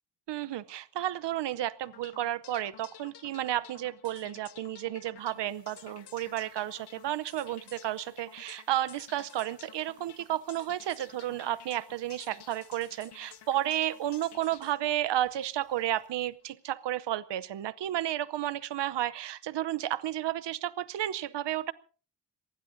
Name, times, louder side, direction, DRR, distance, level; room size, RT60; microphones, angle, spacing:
voice 1, 0.3-21.7, right 13 dB, 80° right, 17 dB, 0.8 m, -32 dB
sound 1, 1.8-15.9, left 10 dB, 70° left, 1.0 m, -53 dB
sound 2, 5.2-16.3, right 4 dB, 45° right, 6.7 m, -69 dB
26.5 x 19.5 x 2.7 m, 0.39 s
wide cardioid pair, 120°, 42 cm